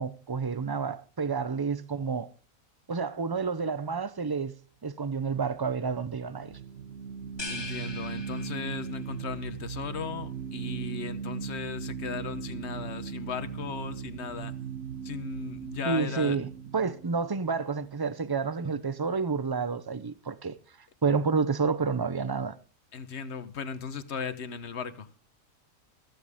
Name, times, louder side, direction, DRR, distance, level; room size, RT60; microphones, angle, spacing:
voice 1, 0.0-2.3 2.9-4.5 4.8-6.6 15.9-20.6 21.0-22.6, right 5 dB, 40° right, 0.3 m, -29 dB
sound 1, 5.6-18.5, right 7 dB, 60° right, 1.1 m, -39 dB
sound 2, 7.4-9.1, left 3 dB, 20° left, 1.3 m, -40 dB
voice 2, 7.5-14.6 15.0-16.4 22.9-25.1, left 5 dB, 55° left, 1.3 m, -37 dB
15.0 x 14.5 x 3.6 m
omnidirectional pair, 1.5 m